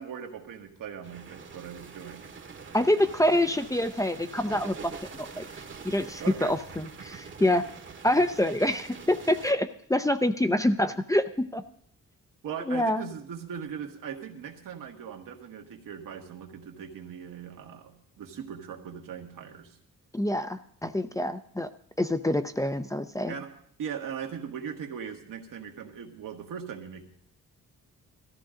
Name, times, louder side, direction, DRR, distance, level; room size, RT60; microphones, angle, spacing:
voice 1, 0.0-2.3 6.2-6.6 7.4-7.5 12.4-19.8 23.3-23.5 23.8-27.0, right 7 dB, 80° right, 3 dB, 1.7 m, -39 dB
sound 1, 1.0-9.5, right 5 dB, 35° right, 1.1 m, -44 dB
voice 2, 2.7-5.4 5.8-7.6 8.0-11.6 12.7-13.0 20.1-21.7 22.0-23.4, left 1 dB, 10° left, 9 dB, 0.6 m, -26 dB
17.0 x 14.0 x 3.8 m, 0.64 s
cardioid pair, 120°, 32 cm